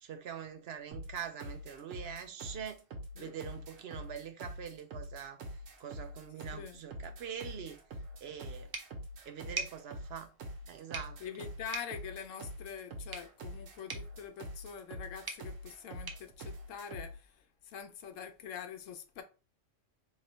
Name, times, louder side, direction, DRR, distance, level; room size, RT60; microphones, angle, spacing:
voice 1, 0.0-2.8 3.2-5.4 5.8-7.8 8.2-8.7 9.3-10.3 10.7-11.5, right 8 dB, 65° right, 0.7 m, -44 dB
sound 1, 0.9-17.2, equal, 80° right, 1.2 m, -45 dB
sound 2, 8.7-17.4, right 3 dB, 30° right, 0.5 m, -47 dB
voice 2, 11.2-19.2, left 7 dB, 90° left, 1.0 m, -45 dB
3.1 x 2.9 x 4.0 m
omnidirectional pair, 1.3 m